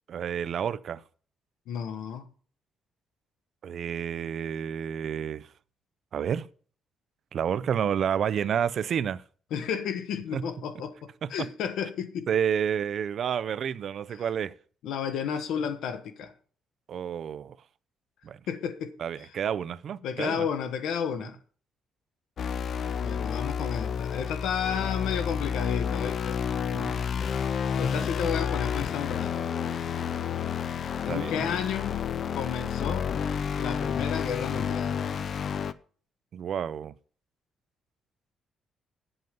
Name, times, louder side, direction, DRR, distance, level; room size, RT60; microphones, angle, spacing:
voice 1, 0.1-1.0 3.6-5.5 6.1-6.5 7.3-9.2 10.3-10.4 11.2-11.3 12.3-14.5 16.9-17.5 18.2-18.4 19.0-20.5 26.7-26.9 31.0-31.5 36.3-36.9, right 8 dB, 45° right, 0.4 m, -30 dB
voice 2, 1.7-2.3 9.5-12.3 14.1-14.2 14.8-16.3 18.5-19.3 20.0-21.4 23.0-26.4 27.8-29.4 31.0-32.0 32.3-33.1 33.6-35.0, left 7 dB, 85° left, 1.3 m, -32 dB
sound 1, 22.4-35.7, left 7 dB, 40° left, 0.5 m, -30 dB
9.3 x 7.9 x 5.2 m
cardioid pair, 180°, 0 cm